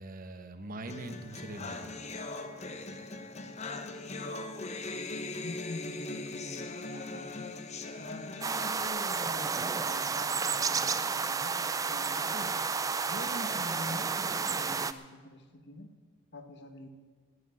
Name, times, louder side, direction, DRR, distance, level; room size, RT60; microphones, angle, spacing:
voice 1, 0.0-2.1, right 2 dB, 40° right, 8 dB, 1.1 m, -42 dB
sound 1, 0.9-8.9, left 3 dB, 30° left, 0.9 m, -40 dB
voice 2, 5.4-7.7 8.0-12.7 13.0-15.9 16.3-16.9, left 1 dB, 50° left, 8 dB, 1.3 m, -45 dB
sound 2, 8.4-14.9, right 5 dB, 15° right, 0.3 m, -31 dB
11.5 x 10.0 x 9.7 m, 1.5 s
head